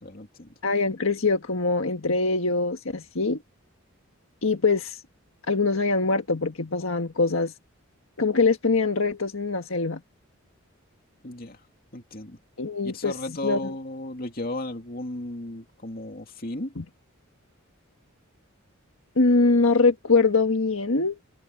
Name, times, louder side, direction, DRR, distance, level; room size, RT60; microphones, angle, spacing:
voice 1, 0.0-0.5 11.2-11.6 11.9-12.4 12.8-16.7, left 1 dB, 45° left, 2.5 m, -35 dB
voice 2, 0.6-3.4 4.4-5.0 5.5-7.5 8.2-10.0 12.6-13.2 13.4-13.7 16.8-16.9 19.2-21.1, left 3 dB, 70° left, 1.5 m, -23 dB
head